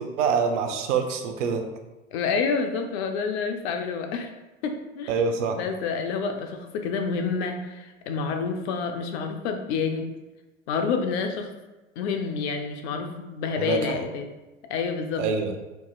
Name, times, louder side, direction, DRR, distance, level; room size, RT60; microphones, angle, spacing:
voice 1, 0.0-1.6 5.1-5.6 13.6-14.0 15.2-15.5, right 5 dB, 65° right, 6 dB, 0.8 m, -25 dB
voice 2, 2.1-4.3 4.6-5.1 5.6-10.1 10.7-11.5 12.0-14.3 14.7-15.3, left 5 dB, 55° left, 5 dB, 0.7 m, -28 dB
4.5 x 4.2 x 2.3 m, 1.1 s
hypercardioid pair, 90°, 39 cm